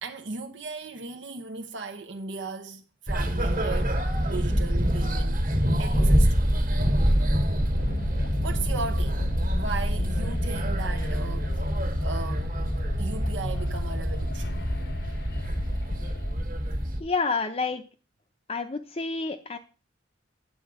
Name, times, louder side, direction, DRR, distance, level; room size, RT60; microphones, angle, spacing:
voice 1, 0.0-5.5 5.8-6.4 8.4-9.3 9.6-11.7 12.0-12.6 13.0-14.7, right 4 dB, 75° right, 0.8 m, -37 dB
sound 1, 3.1-17.0, equal, 45° right, 1.6 m, -26 dB
sound 2, 7.8-16.3, left 2 dB, 60° left, 0.8 m, -37 dB
voice 2, 17.0-17.8 18.5-19.6, left 4 dB, 30° left, 0.6 m, -29 dB
9.3 x 6.9 x 4.8 m
head